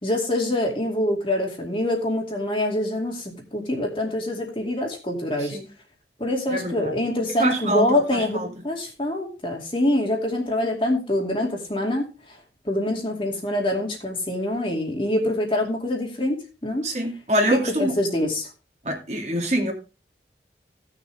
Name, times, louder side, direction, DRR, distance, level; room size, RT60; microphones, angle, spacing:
voice 1, 0.0-5.6 6.2-12.0 12.6-16.8 17.5-18.5, left 1 dB, 30° left, 2.4 m, -25 dB
voice 2, 6.5-6.9 7.4-8.6 16.8-17.9 18.8-19.7, right 1 dB, 40° right, 2.4 m, -25 dB
17.0 x 6.6 x 3.4 m
head